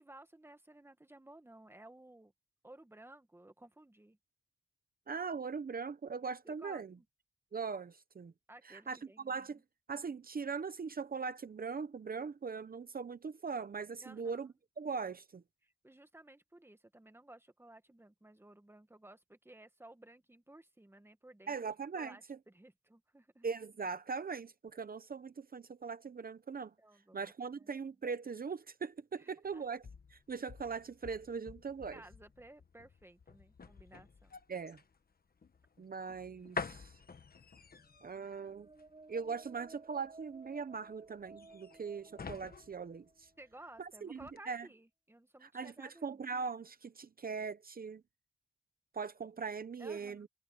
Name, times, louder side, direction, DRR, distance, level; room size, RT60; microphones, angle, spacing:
voice 1, 0.0-2.3 2.6-4.2 6.4-7.0 8.5-9.5 14.0-14.5 15.6-21.7 21.9-23.5 26.8-27.2 27.6-27.7 29.2-29.6 31.9-34.4 43.4-46.2 49.8-50.3, right 1 dB, 15° right, 1.5 m, -56 dB
voice 2, 5.1-6.9 7.5-8.3 8.6-9.0 9.2-9.6 9.9-14.5 14.8-15.4 21.5-22.4 23.4-26.7 27.1-29.8 30.1-32.0 34.5-34.8 35.8-37.0 38.0-38.7 39.1-43.3 43.8-44.2 44.5-44.7 45.4-48.0 48.9-50.3, right 5 dB, 60° right, 0.7 m, -40 dB
sound 1, 29.4-43.8 44.2-44.4, left 5 dB, 65° left, 1.2 m, -49 dB
sound 2, 37.7-43.5, right 3 dB, 35° right, 7.5 m, -58 dB
wide cardioid pair, 90°, 17 cm